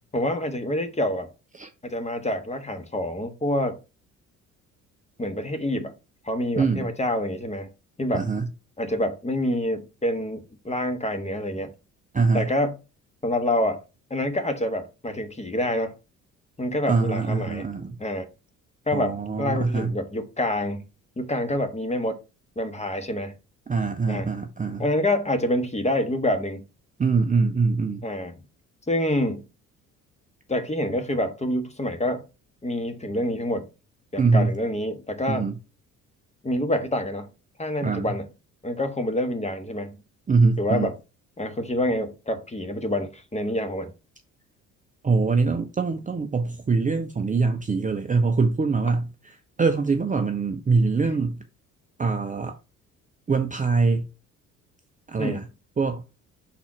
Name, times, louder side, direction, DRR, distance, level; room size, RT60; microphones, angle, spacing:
voice 1, 0.1-1.3 1.8-3.8 5.2-5.9 6.2-7.7 8.0-8.3 8.8-11.7 12.3-12.8 13.2-13.8 14.1-16.0 16.6-17.7 18.0-18.3 18.9-20.8 21.2-22.2 22.6-23.3 24.1-24.3 24.8-26.6 28.0-28.4 28.9-29.4 30.5-32.2 32.6-33.7 34.1-35.5 36.4-37.3 37.6-38.3 38.6-40.0 40.6-40.9 41.4-43.9 51.0-51.1 55.2-55.4, left 1 dB, 15° left, 1.3 m, -27 dB
voice 2, 6.6-6.9 8.1-8.5 12.1-12.5 16.9-18.0 18.9-20.0 23.7-24.8 27.0-28.0 34.2-34.5 35.3-35.6 37.8-38.1 40.3-40.9 45.0-51.4 52.0-52.6 53.3-54.1 55.1-55.4 55.8-56.0, right 4 dB, 20° right, 0.7 m, -23 dB
6.0 x 4.1 x 4.3 m
hypercardioid pair, 50°, 41 cm